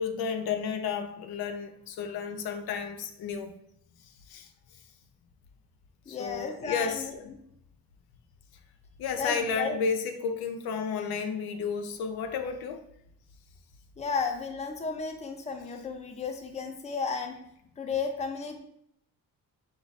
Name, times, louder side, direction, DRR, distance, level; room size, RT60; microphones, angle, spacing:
voice 1, 0.0-3.5 4.3-4.5 6.1-7.3 9.0-12.8, left 6 dB, 90° left, 7 dB, 0.6 m, -32 dB
voice 2, 6.1-7.1 9.2-9.8 14.0-17.4 17.8-18.6, left 5 dB, 20° left, 5 dB, 0.5 m, -33 dB
4.7 x 2.4 x 4.0 m, 0.73 s
cardioid pair, 130°, 36 cm